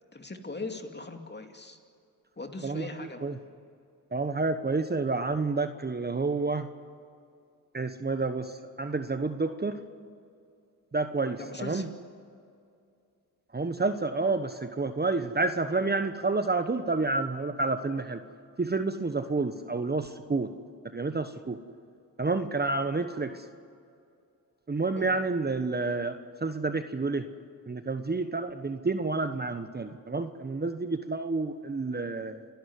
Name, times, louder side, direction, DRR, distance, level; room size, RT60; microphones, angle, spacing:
voice 1, 0.1-1.8 2.4-3.3 11.4-11.9 25.0-25.2, left 3 dB, 25° left, 5 dB, 2.5 m, -40 dB
voice 2, 2.6-3.4 4.1-6.7 7.7-9.8 10.9-11.9 13.5-18.2 18.6-20.5 20.8-21.6 22.2-23.5 24.7-27.3 27.7-32.5, right 3 dB, 25° right, 9 dB, 1.1 m, -29 dB
29.0 x 11.5 x 9.6 m, 2.5 s
supercardioid pair, 55°, 40 cm